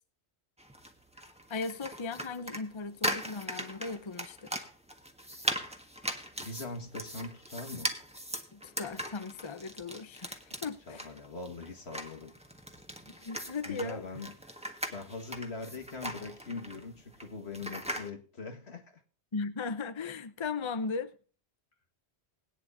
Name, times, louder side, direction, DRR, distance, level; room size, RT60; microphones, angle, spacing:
sound 1, 0.6-18.1, equal, 5° right, 1.5 m, -39 dB
voice 1, 1.5-4.6 8.5-11.0 13.1-14.0 19.3-21.1, left 4 dB, 30° left, 0.7 m, -37 dB
voice 2, 6.4-7.9 10.5-10.6 10.9-12.3 13.7-14.3 14.9-19.0, left 3 dB, 70° left, 2.0 m, -41 dB
21.0 x 9.6 x 2.7 m
omnidirectional pair, 1.1 m